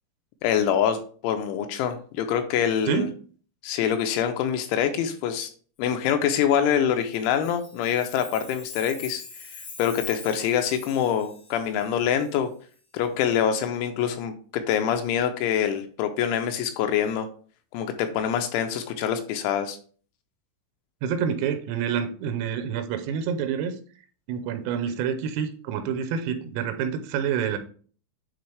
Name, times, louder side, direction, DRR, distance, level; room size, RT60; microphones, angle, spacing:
voice 1, 0.4-3.1 3.6-5.5 5.8-9.2 9.8-12.5 12.9-17.3 17.7-19.8, left 9 dB, 85° left, 7 dB, 2.8 m, -25 dB
Chime, 7.1-12.3, left 4 dB, 55° left, 4.0 m, -43 dB
voice 2, 21.0-23.8 24.3-27.6, right 7 dB, 90° right, 8 dB, 3.3 m, -27 dB
9.5 x 3.7 x 3.2 m, 0.43 s
omnidirectional pair, 5.9 m